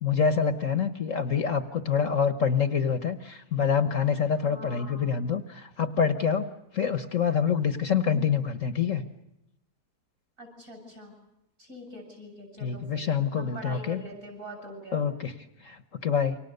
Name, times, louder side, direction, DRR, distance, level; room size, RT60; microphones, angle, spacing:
voice 1, 0.0-6.5 6.7-9.0 12.6-14.0 14.9-15.3 15.6-16.4, left 6 dB, 55° left, 11 dB, 1.4 m, -26 dB
voice 2, 4.4-5.1 10.4-11.1 11.6-13.1 13.4-15.0, right 1 dB, 50° right, 4 dB, 8.5 m, -43 dB
28.5 x 25.0 x 6.7 m, 0.86 s
omnidirectional pair, 1.8 m